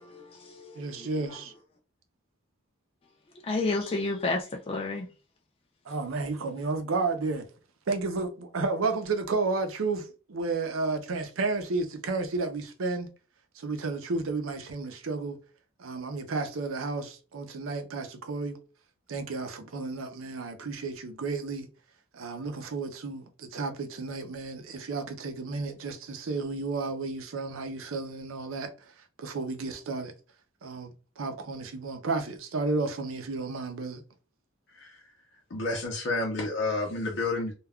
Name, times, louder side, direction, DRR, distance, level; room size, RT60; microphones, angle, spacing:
voice 1, 0.0-1.5 3.3-5.1 5.9-6.0, left 3 dB, 30° left, 0.4 m, -32 dB
voice 2, 0.8-1.5 5.9-7.5 7.9-13.1 13.6-15.4 15.8-18.6 19.1-21.7 22.1-28.7 29.2-30.1 30.6-34.0, right 3 dB, 85° right, 0.6 m, -32 dB
voice 3, 35.5-37.5, left 2 dB, 60° left, 0.7 m, -30 dB
2.3 x 2.2 x 3.5 m
head